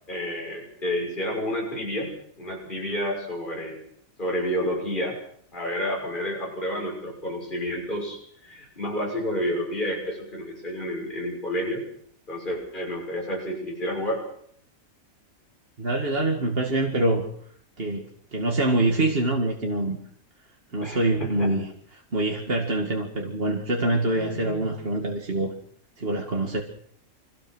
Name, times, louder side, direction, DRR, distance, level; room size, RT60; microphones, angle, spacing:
voice 1, 0.1-2.1 2.4-3.8 4.2-5.2 5.5-11.8 12.3-14.2 20.8-21.5 24.1-24.7, equal, 35° left, -2 dB, 6.5 m, -30 dB
voice 2, 15.8-17.3 17.8-18.1 18.3-20.0 20.7-25.5 26.0-26.6, right 2 dB, 45° right, 0 dB, 2.4 m, -25 dB
25.5 x 17.5 x 6.2 m, 0.65 s
omnidirectional pair, 1.5 m